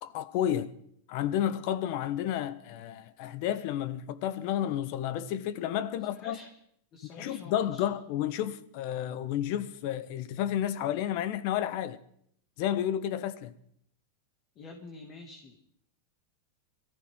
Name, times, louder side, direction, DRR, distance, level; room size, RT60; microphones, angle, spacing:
voice 1, 0.0-0.7 1.1-6.4 7.1-12.0 12.6-13.5, left 11 dB, 55° left, 1.0 m, -31 dB
voice 2, 6.1-6.5 6.9-7.9 14.6-15.6, left 3 dB, 35° left, 2.1 m, -47 dB
23.0 x 15.0 x 3.7 m
supercardioid pair, 140°, 0 cm